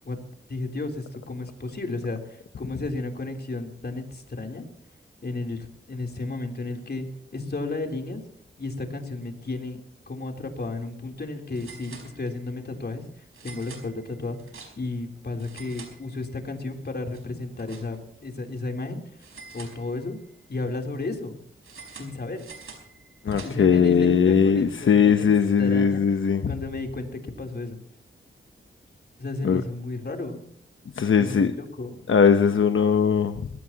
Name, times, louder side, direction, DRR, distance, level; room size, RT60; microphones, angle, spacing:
voice 1, 0.5-4.7 5.2-7.1 7.3-8.2 8.6-9.8 10.1-14.4 14.8-19.0 19.5-20.2 20.5-21.4 22.0-22.5 23.4-25.3 25.6-26.0 26.5-27.8 29.2-30.5 31.2-32.1, left 2 dB, 50° left, 3 dB, 3.6 m, -33 dB
sound 1, 10.5-10.6 10.8-10.9 11.5-12.6 13.3-15.0 15.3-16.5 16.8-18.2 19.2-20.3 21.6-23.9, right 4 dB, 80° right, 4.7 m, -46 dB
voice 2, 23.2-26.5 29.4-29.6 31.0-31.5 32.1-33.5, left 6 dB, 70° left, 8 dB, 0.9 m, -20 dB
21.0 x 16.5 x 3.0 m, 0.67 s
cardioid pair, 75°, 21 cm